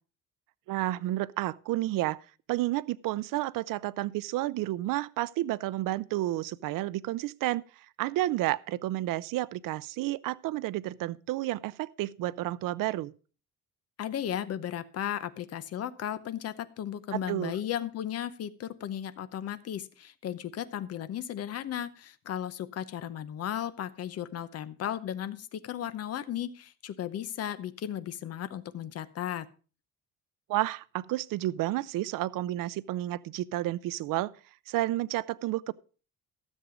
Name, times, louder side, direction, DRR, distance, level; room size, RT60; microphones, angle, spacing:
voice 1, 0.7-2.2 2.5-7.6 8.0-13.1 17.1-17.5 30.5-34.3 34.7-35.7, right 16 dB, 85° right, 0.5 m, -31 dB
voice 2, 14.0-29.5, left 10 dB, 50° left, 0.8 m, -35 dB
13.5 x 7.4 x 5.0 m
cardioid pair, 170°, 32 cm